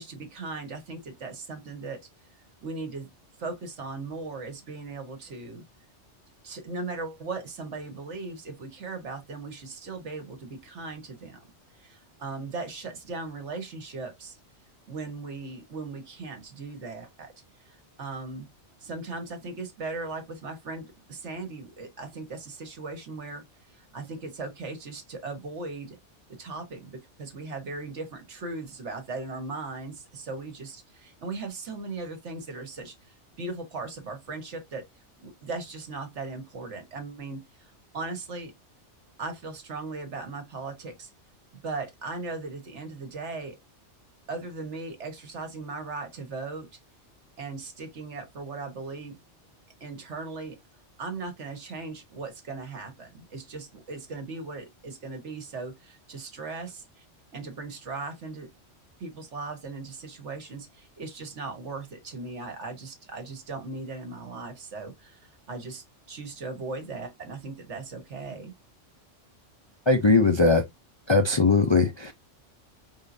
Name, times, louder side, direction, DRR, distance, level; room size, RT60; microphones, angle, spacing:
voice 1, 0.0-2.0 2.6-3.1 3.4-5.6 6.4-11.4 11.8-14.4 14.9-17.3 17.6-18.5 18.8-23.4 23.7-26.0 26.4-32.9 33.4-34.8 35.2-38.5 39.2-41.1 41.6-43.6 44.3-46.7 47.4-49.2 49.8-50.6 51.0-57.0 57.3-58.5 59.0-68.5, right 3 dB, 75° right, 1.5 m, -38 dB
voice 2, 69.9-70.6 71.1-72.1, left 3 dB, 35° left, 0.4 m, -20 dB
4.5 x 3.7 x 2.6 m
omnidirectional pair, 1.2 m